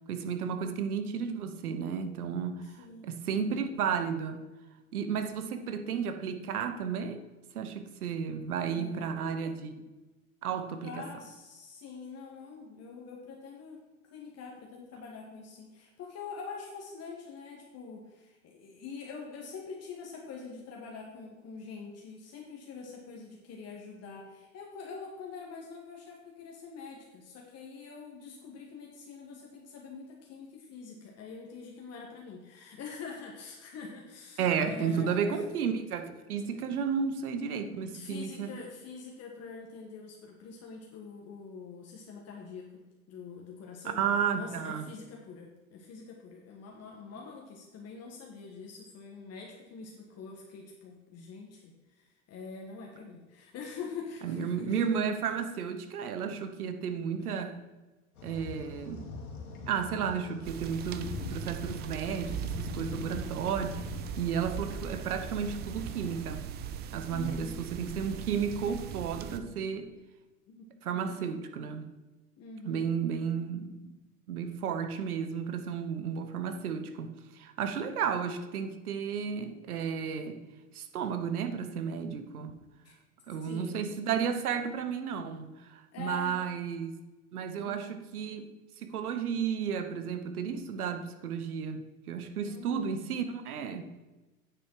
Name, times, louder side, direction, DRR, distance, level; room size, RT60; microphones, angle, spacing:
voice 1, 0.1-4.4 4.9-7.2 7.5-9.8 10.4-10.9 34.4-38.5 43.8-44.9 54.2-57.6 58.2-59.1 59.7-66.4 66.9-69.9 70.8-71.9 72.6-74.0 74.3-80.4 80.7-82.5 83.3-86.9 87.3-93.9, right 7 dB, 80° right, 9 dB, 1.1 m, -33 dB
voice 2, 2.6-3.1 5.4-5.7 8.7-9.3 10.8-13.8 14.1-35.4 36.2-36.6 37.8-42.8 43.1-44.0 44.3-55.1 57.2-57.3 67.1-67.6 70.5-71.1 72.4-72.9 74.8-74.9 82.8-82.9 83.4-83.9 85.9-86.4 87.5-87.8 92.4-93.0, left 5 dB, 35° left, 0 dB, 1.5 m, -45 dB
sound 1, 58.1-66.3, left 3 dB, 85° left, 2.3 m, -43 dB
sound 2, 60.4-69.4, right 9 dB, 25° right, 0.4 m, -40 dB
8.9 x 7.0 x 4.7 m, 1.2 s
hypercardioid pair, 100°, 43 cm